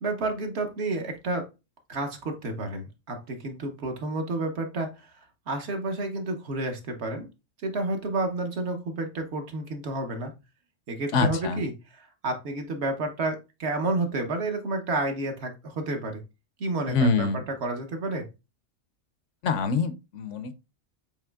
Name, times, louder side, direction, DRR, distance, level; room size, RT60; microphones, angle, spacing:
voice 1, 0.0-1.5 1.9-5.1 5.5-7.3 7.6-10.3 10.9-16.2 16.6-18.3, right 2 dB, 60° right, 1.1 m, -30 dB
voice 2, 11.1-11.6 16.9-17.4 19.4-20.5, left 4 dB, 75° left, 0.9 m, -25 dB
6.9 x 3.0 x 2.2 m
omnidirectional pair, 1.3 m